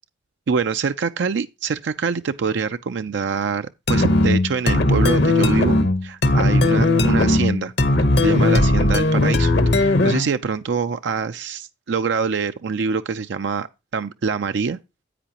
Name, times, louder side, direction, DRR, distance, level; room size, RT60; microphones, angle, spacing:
voice 1, 0.5-7.7 8.2-13.7 13.9-14.8, right 5 dB, 70° right, 0.4 m, -25 dB
sound 1, 3.9-10.4, left 2 dB, 65° left, 1.0 m, -18 dB
10.0 x 8.3 x 2.9 m
head